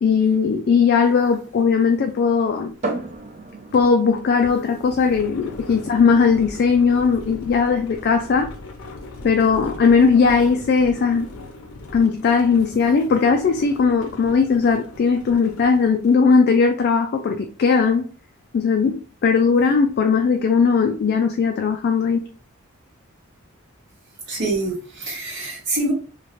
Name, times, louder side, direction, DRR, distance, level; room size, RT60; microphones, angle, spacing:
voice 1, 0.0-2.7 3.7-8.5 9.2-11.3 11.9-18.1 18.5-22.2, left 5 dB, 50° left, 0.3 m, -18 dB
sound 1, 1.0-1.1 1.5-16.2, left 2 dB, 85° left, 0.6 m, -40 dB
sound 2, 2.8-16.3, right 2 dB, 35° right, 0.4 m, -40 dB
voice 2, 24.2-25.9, right 2 dB, 55° right, 1.2 m, -25 dB
3.1 x 2.4 x 2.5 m
head